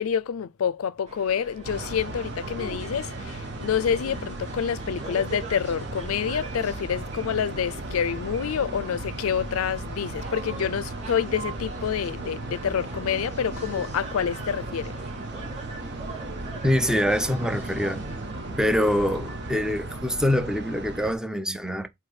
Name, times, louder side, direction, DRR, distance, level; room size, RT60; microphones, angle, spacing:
voice 1, 0.0-14.9, left 7 dB, 90° left, 0.4 m, -28 dB
sound 1, 1.0-19.8, right 3 dB, 35° right, 3.4 m, -42 dB
sound 2, 1.6-21.1, right 2 dB, 55° right, 1.4 m, -36 dB
voice 2, 16.6-18.1 18.6-21.9, left 1 dB, 5° right, 0.7 m, -24 dB
4.9 x 4.6 x 4.8 m
head